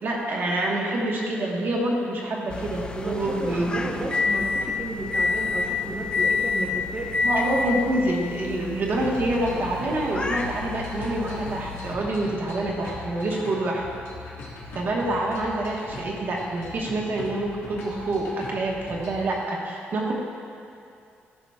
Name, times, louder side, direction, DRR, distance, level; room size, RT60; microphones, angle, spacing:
voice 1, 0.0-4.0 7.2-13.8 14.7-20.1, right 1 dB, 55° right, -2 dB, 1.2 m, -27 dB
sound 1, 2.5-11.9, left 4 dB, 25° left, 0.4 m, -29 dB
voice 2, 2.9-7.1, right 2 dB, 25° right, -3 dB, 0.8 m, -33 dB
sound 2, 8.9-19.3, left 1 dB, 90° left, 1.5 m, -40 dB
14.0 x 5.0 x 2.3 m, 2.5 s
cardioid pair, 110°, 4 cm